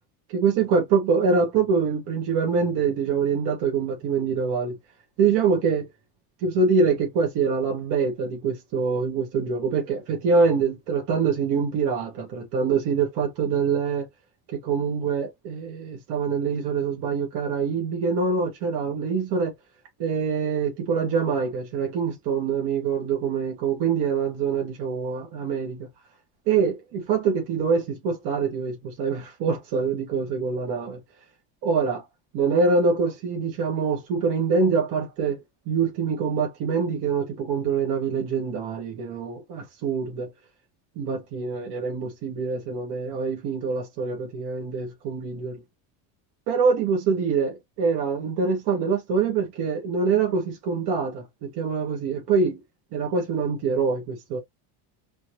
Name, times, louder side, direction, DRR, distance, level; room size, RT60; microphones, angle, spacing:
voice 1, 0.3-4.7 5.2-5.9 6.4-14.1 14.5-19.5 20.0-25.9 26.5-31.0 31.6-32.0 32.3-35.4 35.7-40.3 41.0-45.6 46.5-52.6 52.9-54.4, right 5 dB, 60° right, 1.9 m, -25 dB
4.3 x 2.8 x 3.1 m
cardioid pair, 135°, 45 cm